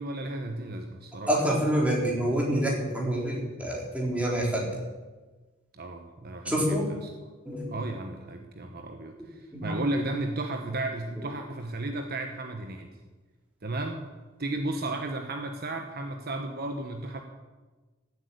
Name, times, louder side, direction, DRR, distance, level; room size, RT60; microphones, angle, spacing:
voice 1, 0.0-1.5 5.7-7.1 7.7-13.0 13.6-14.1 14.4-17.2, right 2 dB, 45° right, 4 dB, 1.1 m, -34 dB
voice 2, 1.2-4.7 6.5-6.9 7.4-7.7 9.5-9.8, right 1 dB, 5° right, -3 dB, 3.8 m, -27 dB
16.0 x 8.2 x 8.5 m, 1.3 s
head